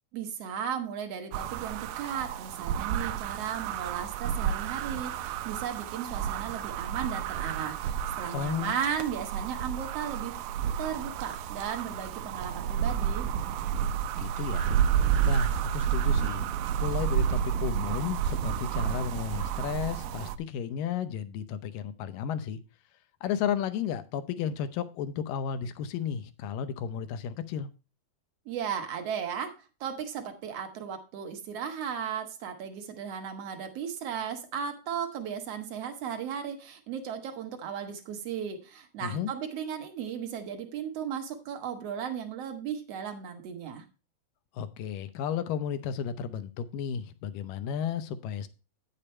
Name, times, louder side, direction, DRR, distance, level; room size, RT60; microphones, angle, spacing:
voice 1, 0.1-10.3 10.8-13.3 28.5-43.8, right 8 dB, 55° right, 2.0 m, -36 dB
sound 1, 1.3-20.4, right 8 dB, 90° right, 2.4 m, -30 dB
voice 2, 8.3-8.7 14.2-14.8 15.2-16.5 16.8-22.6 23.2-27.7 39.0-39.3 44.5-48.5, left 8 dB, 80° left, 2.4 m, -33 dB
9.7 x 6.9 x 4.3 m
omnidirectional pair, 4.0 m